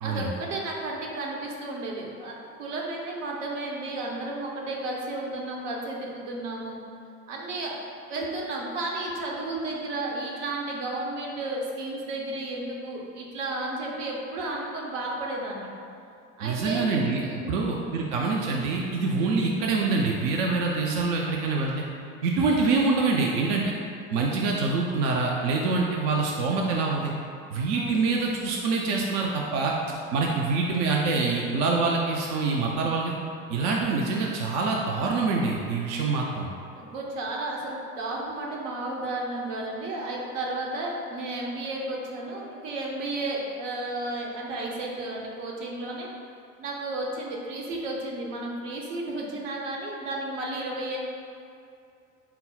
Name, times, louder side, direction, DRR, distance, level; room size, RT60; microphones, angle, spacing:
voice 1, 0.0-6.8 7.3-7.7 8.1-15.7 16.4-16.8 17.2-17.5 27.7-28.1 36.7-46.1 46.6-51.0, right 2 dB, 65° right, -2 dB, 0.8 m, -33 dB
voice 2, 16.4-17.2 17.5-21.7 22.2-23.7 24.1-27.1 27.5-29.7 30.1-33.2 33.5-36.5, right 3 dB, 45° right, -1 dB, 0.4 m, -25 dB
4.1 x 2.0 x 3.8 m, 2.5 s
figure-of-eight pair, 65°, 41 cm